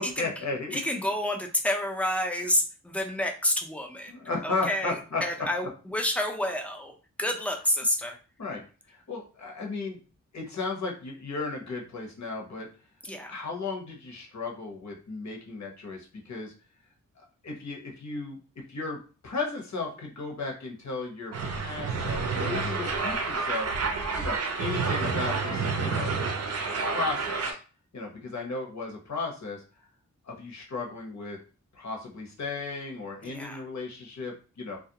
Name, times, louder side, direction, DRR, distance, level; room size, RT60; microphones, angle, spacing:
voice 1, 0.0-0.8 4.1-5.2 8.4-10.0 10.3-12.7 13.3-16.5 17.4-18.4 18.7-23.7 24.1-26.1 26.8-27.6 27.9-29.6 30.3-31.4 31.7-34.8, left 3 dB, 60° left, 0 dB, 0.9 m, -35 dB
voice 2, 0.7-4.1 4.4-8.2 13.0-13.3 33.2-33.6, left 1 dB, 5° left, 3 dB, 0.5 m, -29 dB
sound 1, 21.3-27.5, right 4 dB, 50° right, 0.5 m, -29 dB
2.3 x 2.1 x 2.7 m, 0.36 s
cardioid pair, 65°, 32 cm